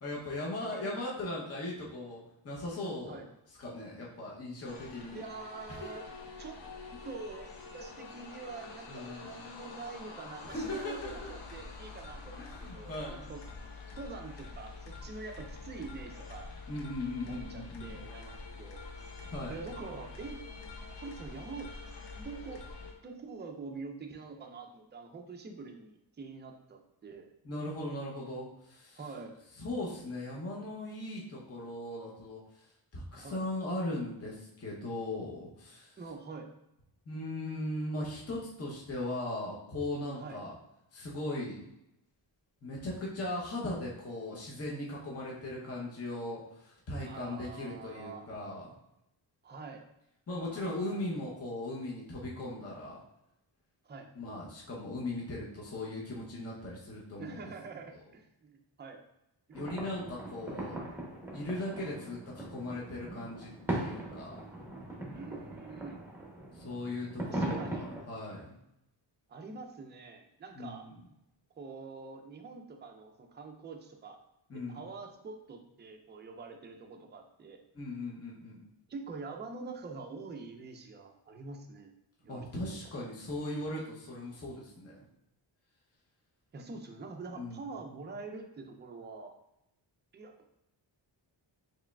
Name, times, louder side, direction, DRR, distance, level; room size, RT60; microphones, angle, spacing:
voice 1, 0.0-3.2 3.6-5.2 5.7-5.9 6.9-7.1 8.9-9.4 10.4-11.3 12.4-13.2 16.7-18.0 19.2-19.6 27.4-29.0 29.6-36.0 37.1-40.6 40.9-41.7 42.6-48.7 50.3-53.0 54.1-57.5 59.5-60.8 61.3-64.4 66.5-68.6 70.5-71.0 74.5-74.8 77.7-78.7 82.3-85.0 87.3-87.7, left 1 dB, 30° left, -4 dB, 0.7 m, -38 dB
sound 1, 4.7-22.9, left 3 dB, 65° left, 0.7 m, -46 dB
voice 2, 5.1-6.0 6.4-6.6 7.0-13.4 14.0-16.5 17.2-18.8 19.5-20.4 20.9-21.7 22.1-27.3 29.0-29.4 33.2-33.4 36.0-36.5 40.2-40.4 47.0-48.3 49.4-49.9 50.4-51.0 53.8-54.1 57.2-59.0 65.1-66.0 67.2-67.9 69.3-70.9 71.6-74.2 74.5-77.6 78.9-81.9 82.2-82.8 86.5-89.4 90.1-90.4, right 4 dB, 25° right, 3 dB, 0.4 m, -45 dB
sound 2, 59.5-68.0, right 1 dB, 5° right, 0.7 m, -39 dB
4.7 x 3.1 x 2.3 m, 0.83 s
wide cardioid pair, 130°, 46 cm